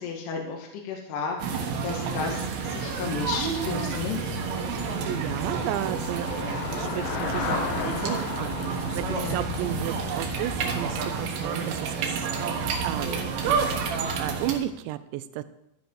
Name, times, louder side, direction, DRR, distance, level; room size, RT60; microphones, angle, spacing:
voice 1, 0.0-4.3 9.1-9.5, left 5 dB, 65° left, 1 dB, 3.5 m, -33 dB
sound 1, 1.4-14.6, right 5 dB, 65° right, 2.6 m, -30 dB
Traffic noise roadway noise / Bicycle, 2.3-11.5, left 6 dB, 90° left, 1.8 m, -36 dB
voice 2, 4.6-6.3 6.7-13.2 13.5-13.8 14.2-15.4, right 13 dB, 80° right, 13 dB, 2.7 m, -34 dB
11.5 x 10.5 x 4.7 m, 0.82 s
omnidirectional pair, 5.5 m